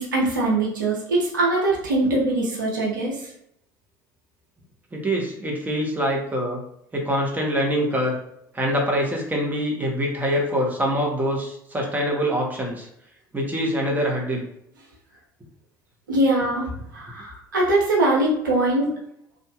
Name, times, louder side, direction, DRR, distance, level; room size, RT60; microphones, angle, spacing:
voice 1, 0.0-3.2 16.1-18.9, right 2 dB, 85° right, -4 dB, 0.7 m, -22 dB
voice 2, 4.9-6.6 6.9-8.2 8.5-12.9 13.3-14.4, equal, 15° right, -1 dB, 1.0 m, -24 dB
2.7 x 2.4 x 2.4 m, 0.74 s
hypercardioid pair, 65°, 10 cm